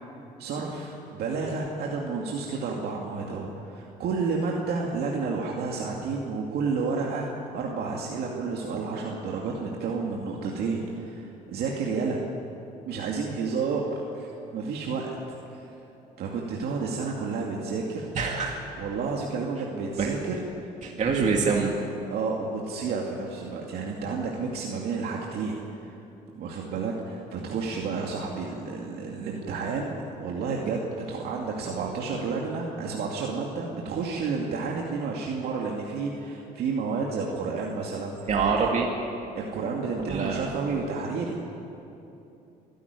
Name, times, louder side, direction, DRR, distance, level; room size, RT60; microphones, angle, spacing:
voice 1, 0.4-12.2 12.8-15.1 15.5-15.6 16.2-18.1 18.8-20.7 21.1-21.3 22.1-25.6 25.8-26.0 26.3-38.2 38.6-38.7 39.3-41.4, right 4 dB, 70° right, -2 dB, 2.4 m, -31 dB
voice 2, 18.1-18.5 20.0-20.1 20.8-21.8 38.3-38.9 40.0-40.5, right 5 dB, 45° right, 0 dB, 2.2 m, -25 dB
25.0 x 12.0 x 9.7 m, 2.9 s
cardioid pair, 110°, 17 cm